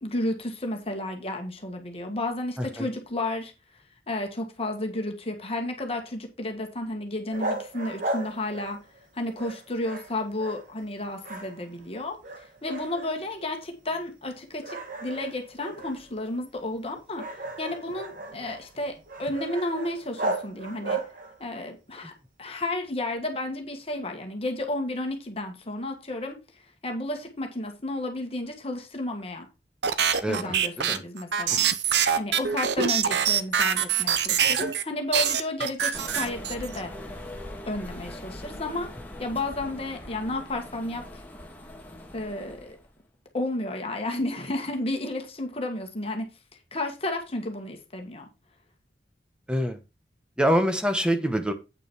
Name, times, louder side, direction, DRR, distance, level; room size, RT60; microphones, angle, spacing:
voice 1, 0.0-3.5 4.1-8.8 9.1-17.2 17.6-21.0 21.4-22.1 22.4-26.4 26.8-29.5 30.3-31.7 32.1-36.9 37.7-38.9 39.2-41.2 42.1-42.8 43.3-46.3 46.7-48.3, left 1 dB, 35° left, 1.6 m, -32 dB
sound 1, 7.3-9.1 9.4-10.9 11.2-11.9 12.2-13.4 13.9-14.0 14.6-21.5, right 2 dB, 50° right, 1.6 m, -36 dB
sound 2, 29.8-34.8 35.1-36.8, right 8 dB, 75° right, 0.9 m, -24 dB
voice 2, 30.2-31.0 31.5-31.6 49.5-49.8 50.4-51.5, equal, 5° right, 1.2 m, -25 dB
sound 3, 35.9-42.9, left 1 dB, 10° left, 1.8 m, -41 dB
8.7 x 6.2 x 4.5 m
head